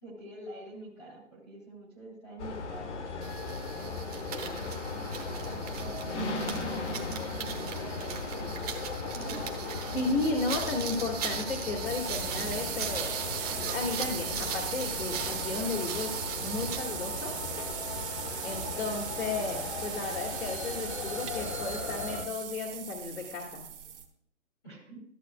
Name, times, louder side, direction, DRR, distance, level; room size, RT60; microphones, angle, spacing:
voice 1, 0.0-3.1 3.5-6.8 7.3-8.6 9.1-9.4 24.6-25.0, right 2 dB, ahead, -14 dB, 0.4 m, -47 dB
sound 1, 2.4-22.2, left 4 dB, 60° left, 1.3 m, -37 dB
sound 2, 3.2-16.9, right 8 dB, 30° right, 0.9 m, -39 dB
voice 2, 9.9-13.1 13.6-17.3 18.4-23.6, left 3 dB, 85° left, -3 dB, 2.0 m, -34 dB
sound 3, 11.8-24.0, right 9 dB, 45° right, 1.3 m, -38 dB
13.5 x 7.8 x 2.3 m, 0.65 s
hypercardioid pair, 150°, 39 cm